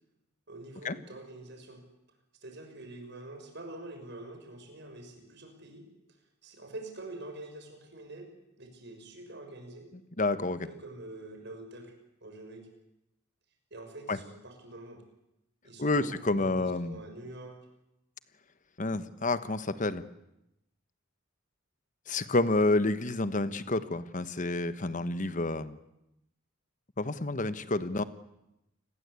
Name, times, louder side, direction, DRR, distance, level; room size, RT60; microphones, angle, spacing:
voice 1, 0.5-1.8 2.4-5.8 6.4-8.3 8.6-9.9 10.5-11.9 12.2-12.6 13.7-15.0 15.6-17.6, right 2 dB, 55° right, 5 dB, 6.6 m, -45 dB
voice 2, 10.2-10.7 14.1-14.2 15.8-17.0 18.8-20.0 22.1-25.8 27.0-28.0, left 2 dB, 40° left, 13 dB, 1.2 m, -29 dB
29.0 x 21.0 x 8.4 m, 0.86 s
head